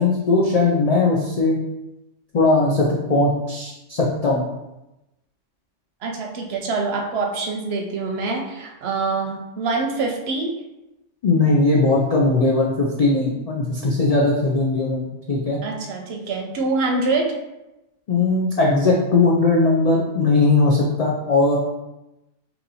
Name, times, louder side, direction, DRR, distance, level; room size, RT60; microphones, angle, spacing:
voice 1, 0.0-1.6 2.3-4.4 11.2-15.6 18.1-21.6, left 3 dB, 65° left, -3 dB, 0.4 m, -19 dB
voice 2, 6.0-10.6 15.6-17.4, right 3 dB, 65° right, 2 dB, 0.7 m, -25 dB
2.9 x 2.6 x 4.0 m, 0.96 s
omnidirectional pair, 1.2 m